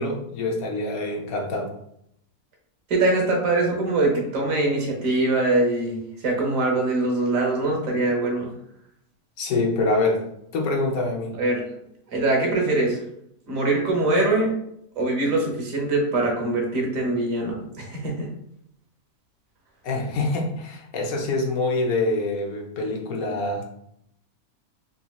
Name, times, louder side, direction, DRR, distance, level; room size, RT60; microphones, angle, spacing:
voice 1, 0.0-1.7 9.4-10.2 10.5-11.4 19.8-23.7, left 2 dB, 85° left, 1 dB, 1.2 m, -25 dB
voice 2, 2.9-6.0 6.2-8.5 11.4-11.7 12.1-13.0 13.5-14.5 15.0-18.3, right 2 dB, 70° right, 0 dB, 1.4 m, -23 dB
4.1 x 2.8 x 2.3 m, 0.73 s
omnidirectional pair, 1.5 m